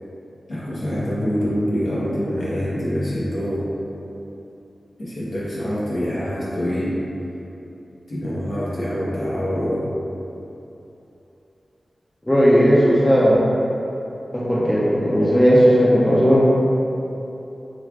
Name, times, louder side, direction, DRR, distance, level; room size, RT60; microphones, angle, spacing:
voice 1, 0.5-3.6 5.0-6.9 8.1-9.9, equal, 65° left, -9 dB, 1.0 m, -25 dB
voice 2, 12.3-13.5 14.3-16.5, equal, 10° left, -6 dB, 0.5 m, -16 dB
3.2 x 2.4 x 3.5 m, 2.9 s
wide cardioid pair, 75°, 0 cm